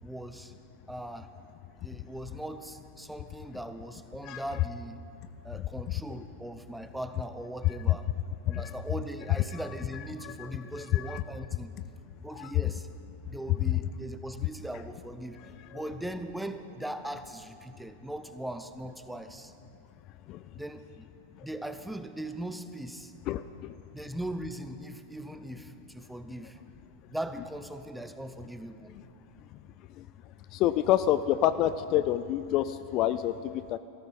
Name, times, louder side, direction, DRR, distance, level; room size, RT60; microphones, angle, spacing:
voice 1, 0.0-0.5 0.9-1.3 1.8-5.0 5.4-8.1 8.5-11.7 12.2-12.9 13.3-15.4 15.7-19.5 20.5-21.1 21.4-23.1 23.9-26.6 27.1-29.0, right 1 dB, 5° right, 9 dB, 0.8 m, -39 dB
voice 2, 23.3-23.7 30.0-30.1 30.5-33.8, left 12 dB, 40° left, 13 dB, 0.4 m, -27 dB
18.0 x 14.5 x 4.3 m, 2.7 s
figure-of-eight pair, 90°, 0 cm